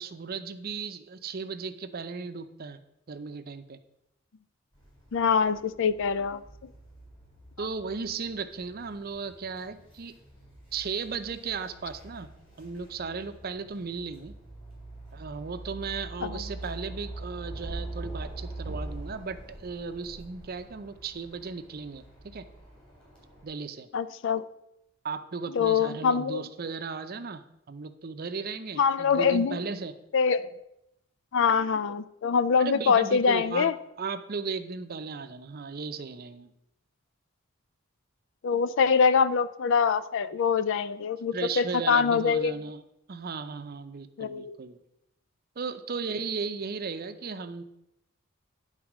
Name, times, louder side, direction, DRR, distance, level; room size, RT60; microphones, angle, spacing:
voice 1, 0.0-2.8 3.1-3.8 7.6-10.1 10.7-12.3 12.6-14.3 15.1-22.5 23.4-23.9 25.0-29.9 32.6-33.7 34.0-36.5 41.3-42.8 43.1-44.8 45.6-47.6, right 5 dB, 45° right, 10 dB, 0.6 m, -36 dB
sound 1, 4.7-23.5, right 2 dB, 25° left, 3.8 m, -44 dB
voice 2, 5.1-6.7 16.2-16.4 23.9-24.4 25.5-26.4 28.8-29.6 30.1-30.5 31.3-33.7 38.4-42.5 44.2-44.6, left 6 dB, 65° left, 15 dB, 0.4 m, -24 dB
10.5 x 4.1 x 6.0 m, 0.83 s
head